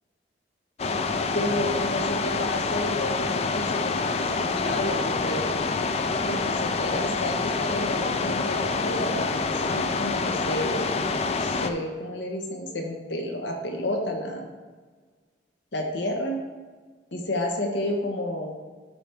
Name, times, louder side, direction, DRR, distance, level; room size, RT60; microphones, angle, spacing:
sound 1, 0.8-11.7, left 4 dB, 35° left, 0.4 m, -27 dB
voice 1, 1.3-5.5 6.2-10.9 11.4-14.5 15.7-16.4 17.1-18.6, left 1 dB, 80° left, 2 dB, 1.2 m, -31 dB
12.0 x 4.5 x 3.5 m, 1.4 s
head